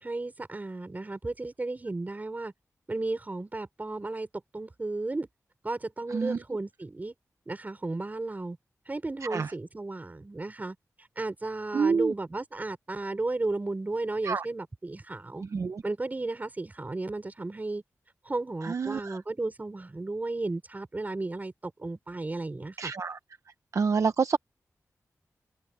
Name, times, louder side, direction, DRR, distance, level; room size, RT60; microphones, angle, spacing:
voice 1, 0.0-2.5 2.9-4.3 4.5-5.3 5.6-7.1 7.5-8.6 8.9-10.8 11.2-15.5 15.8-17.8 18.3-22.9, right 2 dB, 30° right, 5.8 m, -34 dB
voice 2, 9.2-9.5 11.7-12.1 14.2-14.5 15.4-15.8 18.6-19.2 22.8-23.2 23.7-24.4, right 5 dB, 60° right, 0.7 m, -28 dB
wide cardioid pair, 115°, 6 cm